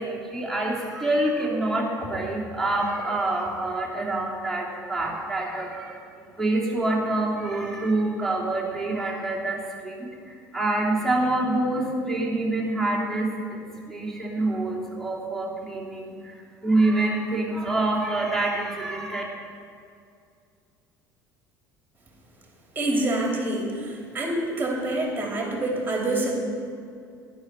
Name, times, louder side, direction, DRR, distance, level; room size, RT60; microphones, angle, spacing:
voice 1, 0.0-19.2, right 2 dB, ahead, -2 dB, 2.8 m, -26 dB
voice 2, 22.7-26.4, right 1 dB, 15° right, -1 dB, 3.0 m, -26 dB
11.5 x 10.5 x 4.5 m, 2.3 s
figure-of-eight pair, 60°, 11 cm